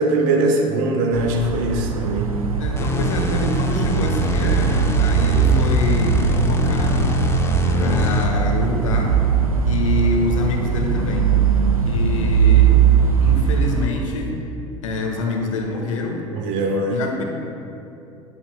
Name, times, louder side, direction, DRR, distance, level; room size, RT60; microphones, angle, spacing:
voice 1, 0.0-2.3 16.3-17.0, right 2 dB, 50° right, 1 dB, 1.1 m, -21 dB
sound 1, 1.1-13.9, right 7 dB, 85° right, 0.4 m, -19 dB
voice 2, 2.6-7.2 7.7-9.2 9.6-11.3 11.8-12.8 13.2-14.4 14.8-16.2 16.9-17.2, left 3 dB, 65° left, 1 dB, 1.0 m, -26 dB
sound 2, 2.8-8.5, left 1 dB, 15° left, 0.7 m, -24 dB
10.0 x 7.9 x 2.2 m, 2.7 s
figure-of-eight pair, 70°, 18 cm